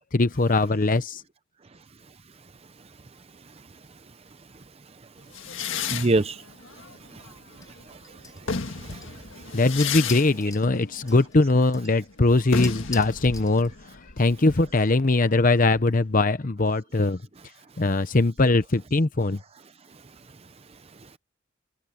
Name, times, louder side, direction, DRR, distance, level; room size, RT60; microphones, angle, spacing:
voice 1, 0.1-1.2 9.5-13.7 14.2-17.2 17.8-19.4, left 2 dB, 40° left, 0.8 m, -21 dB
sound 1, 5.3-7.8 8.3-15.8, left 6 dB, 70° left, 1.8 m, -34 dB
voice 2, 5.9-6.4 6.8-6.9 7.1-7.3 7.9-9.6, right 2 dB, 30° right, 0.6 m, -29 dB
sound 2, 7.6-14.1, left 5 dB, 20° left, 4.0 m, -45 dB
head